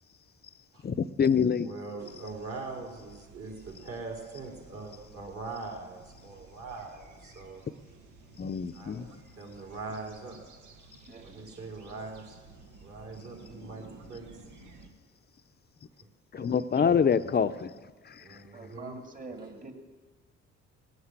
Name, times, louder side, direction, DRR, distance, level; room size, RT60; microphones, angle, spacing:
voice 1, 0.8-1.7 8.4-9.1 16.3-17.7 18.1-18.4, left 7 dB, 35° left, 13 dB, 0.7 m, -26 dB
voice 2, 1.6-7.6 8.7-10.4 11.2-12.2 12.8-14.3 18.2-19.0, right 3 dB, 50° right, 0 dB, 4.5 m, -42 dB
sound 1, 2.0-14.9, right 3 dB, 85° right, 1.8 m, -54 dB
voice 3, 11.1-11.5 16.3-16.9 18.5-19.7, right 3 dB, 25° right, 5 dB, 2.1 m, -45 dB
17.5 x 9.5 x 8.3 m, 1.4 s
cardioid pair, 90°, 30 cm